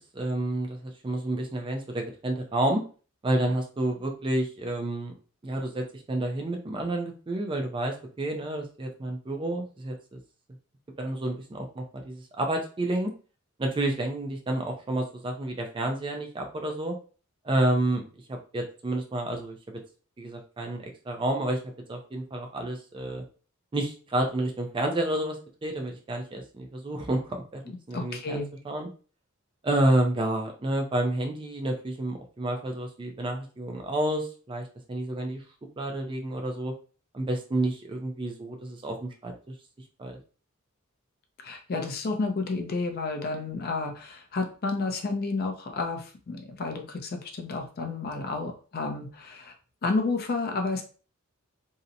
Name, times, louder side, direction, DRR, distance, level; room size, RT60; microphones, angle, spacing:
voice 1, 0.1-2.8 3.2-5.1 5.4-10.2 11.0-13.1 13.6-17.0 17.4-18.0 18.3-19.6 20.2-21.6 21.9-23.2 23.7-27.6 27.9-28.9 29.6-35.4 35.8-36.7 37.1-39.5 40.0-40.2, right 1 dB, 25° right, 3 dB, 0.4 m, -29 dB
voice 2, 27.7-28.5 41.4-49.5 49.8-50.8, left 3 dB, 45° left, 4 dB, 0.4 m, -31 dB
2.7 x 2.0 x 2.5 m, 0.37 s
head